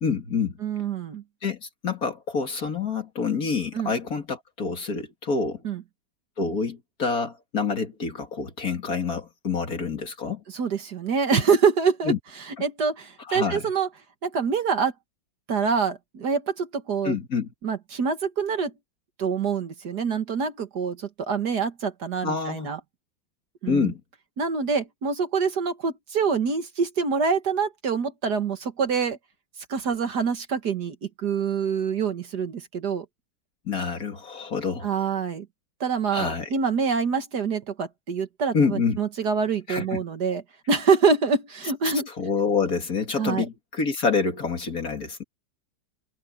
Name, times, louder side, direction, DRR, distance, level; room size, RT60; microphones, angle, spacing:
voice 1, 0.0-0.6 1.4-5.6 6.4-10.4 12.0-12.2 13.3-13.6 17.0-17.5 22.2-22.7 23.7-24.0 33.7-34.9 36.1-36.5 38.5-39.0 39.7-40.0 42.2-45.2, left 5 dB, 45° left, 2.8 m, -27 dB
voice 2, 0.6-1.2 3.7-3.9 5.6-5.8 10.5-13.9 14.2-14.9 15.5-17.2 17.6-18.7 19.2-22.8 23.6-23.9 24.4-29.2 29.7-33.1 34.8-35.5 35.8-40.4 40.7-42.1 43.2-43.5, right 5 dB, 55° right, 2.0 m, -25 dB
omnidirectional pair, 2.2 m